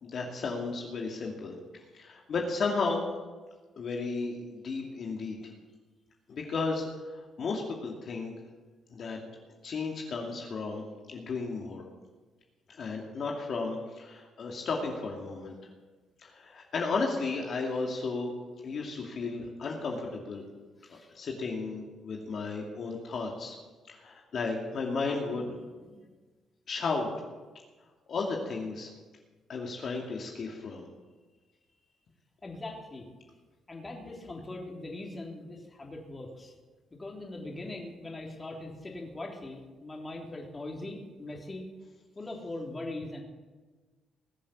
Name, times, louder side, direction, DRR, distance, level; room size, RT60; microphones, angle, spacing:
voice 1, 0.0-1.5 1.9-3.0 3.8-5.4 6.3-8.3 8.9-9.2 9.6-11.8 12.8-15.5 16.2-18.3 18.6-20.4 20.9-23.5 23.9-25.5 26.7-27.1 28.1-28.9 29.5-30.9, left 4 dB, 55° left, -1 dB, 2.4 m, -34 dB
voice 2, 20.8-21.1 25.4-26.0 32.4-33.1 33.7-36.5 37.0-41.7 42.1-43.2, left 2 dB, 25° left, 0 dB, 3.4 m, -41 dB
20.5 x 7.4 x 7.4 m, 1.3 s
cardioid pair, 90°, 0 cm